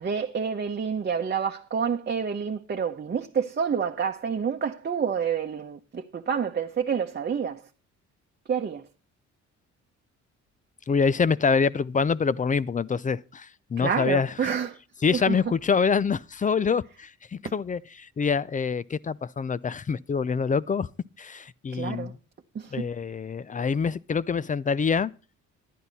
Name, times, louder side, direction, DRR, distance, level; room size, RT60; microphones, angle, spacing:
voice 1, 0.0-7.6 8.5-8.8 13.8-14.8 15.1-15.4 21.7-22.1 22.5-22.9, right 7 dB, 35° right, 1.0 m, -28 dB
voice 2, 10.9-14.3 15.0-20.9 21.2-22.1 22.7-25.1, left 5 dB, 25° left, 0.5 m, -26 dB
11.0 x 10.0 x 4.1 m
cardioid pair, 90°, 30 cm